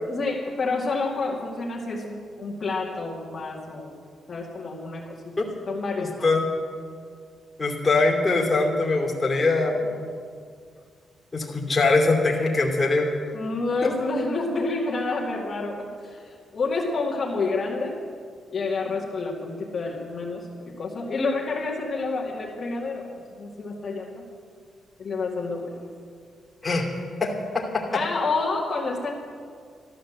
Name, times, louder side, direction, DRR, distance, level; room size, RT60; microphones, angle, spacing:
voice 1, 0.1-4.0 4.3-5.3 5.7-6.3 13.3-18.0 18.5-24.3 25.0-25.8 27.9-29.1, left 3 dB, 35° left, -4 dB, 2.2 m, -29 dB
voice 2, 6.0-6.5 7.6-9.9 11.3-13.1 26.6-26.8 27.2-27.6, left 3 dB, 15° left, -3 dB, 2.6 m, -22 dB
13.5 x 12.0 x 7.8 m, 2.1 s
cardioid pair, 140°, 0 cm